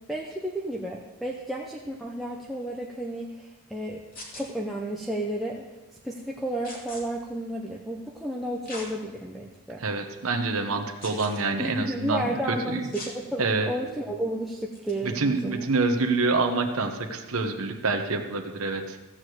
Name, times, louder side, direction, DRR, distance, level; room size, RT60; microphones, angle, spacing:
voice 1, 0.1-4.0 4.3-5.7 6.0-9.8 11.6-15.7, right 1 dB, ahead, -2 dB, 0.6 m, -32 dB
sound 1, 4.1-4.5 6.6-7.0 8.7-8.9 9.5-9.6 11.0-11.4 12.9-13.1 14.7-14.9, left 2 dB, 40° left, 2.4 m, -40 dB
voice 2, 9.8-12.8 13.4-13.7 15.0-19.0, right 3 dB, 70° right, 4 dB, 1.0 m, -27 dB
14.5 x 5.0 x 7.8 m, 1.1 s
head